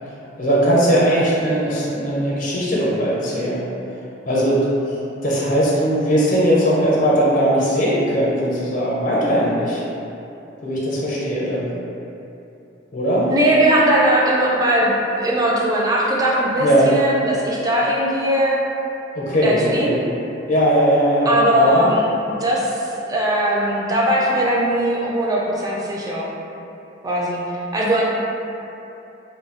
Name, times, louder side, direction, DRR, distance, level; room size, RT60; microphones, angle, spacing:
voice 1, 0.4-3.6 4.3-4.7 5.2-9.8 10.6-11.7 12.9-13.3 16.6-16.9 19.1-20.0 20.5-21.9, equal, 45° left, -6 dB, 0.5 m, -19 dB
voice 2, 13.3-18.6 19.4-20.0 21.3-22.1 22.4-26.3 27.0-28.0, right 1 dB, 20° right, -4 dB, 0.3 m, -19 dB
2.2 x 2.0 x 3.6 m, 2.9 s
head